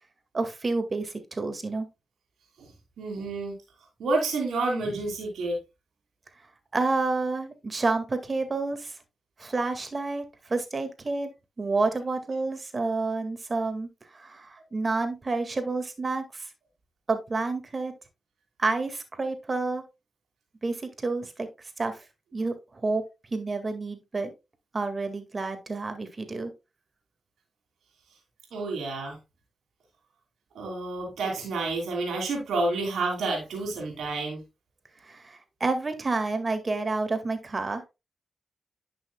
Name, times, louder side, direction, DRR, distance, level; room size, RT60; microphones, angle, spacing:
voice 1, 0.3-1.9 6.7-9.0 9.4-11.3 11.6-16.5 17.1-17.9 18.6-19.8 20.6-21.5 21.8-22.0 22.3-23.0 23.3-24.3 24.7-26.5 35.0-37.8, right 3 dB, 40° right, 8 dB, 2.0 m, -29 dB
voice 2, 3.0-3.5 4.0-5.6 28.5-29.2 30.5-34.4, right 3 dB, 90° right, -1 dB, 2.9 m, -29 dB
11.0 x 6.2 x 2.3 m, 0.25 s
cardioid pair, 55°, 0 cm